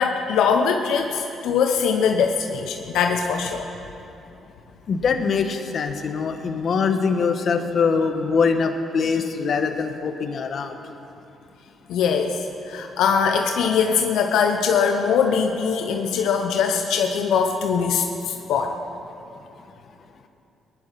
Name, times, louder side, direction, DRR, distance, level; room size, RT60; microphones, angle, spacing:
voice 1, 0.0-3.7 11.9-18.8, left 6 dB, 85° left, 4 dB, 0.8 m, -22 dB
voice 2, 4.9-10.8, left 5 dB, 55° left, 6 dB, 1.2 m, -23 dB
19.0 x 11.0 x 5.9 m, 2.8 s
cardioid pair, 90°, 0 cm